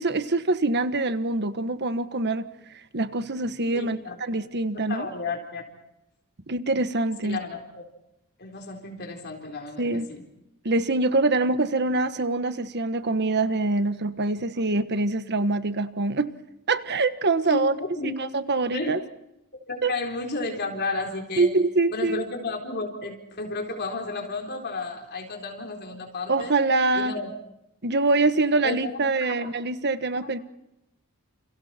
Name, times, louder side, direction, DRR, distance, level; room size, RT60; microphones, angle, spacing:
voice 1, 0.0-2.5 2.9-5.1 6.5-7.4 9.8-10.1 10.6-16.3 16.7-17.7 18.0-19.0 19.8-19.9 21.4-22.2 26.3-27.1 27.8-30.4, right 3 dB, 50° right, 11 dB, 1.4 m, -24 dB
voice 2, 3.7-4.4 4.9-5.7 7.2-7.8 8.4-10.2 17.5-18.1 18.7-18.9 19.7-21.5 21.9-26.5 26.9-27.3 28.6-28.8 29.2-29.4, left 3 dB, 50° left, 2 dB, 4.0 m, -32 dB
30.0 x 29.5 x 4.4 m, 0.86 s
head